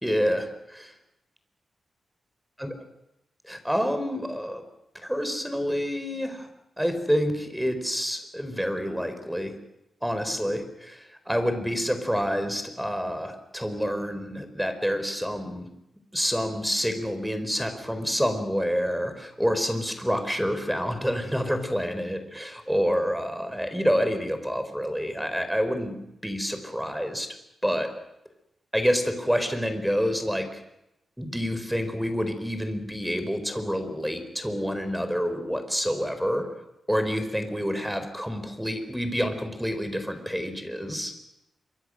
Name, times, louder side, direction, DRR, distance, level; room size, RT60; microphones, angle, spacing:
voice 1, 0.0-0.9 2.6-2.7 3.4-4.6 5.0-6.5 6.8-9.5 10.0-15.7 16.1-26.0 26.2-27.3 27.6-27.9 28.7-30.6 31.2-36.5 36.9-41.1, equal, 5° right, 9 dB, 4.4 m, -28 dB
26.5 x 24.5 x 6.5 m, 0.86 s
cardioid pair, 90°, 0 cm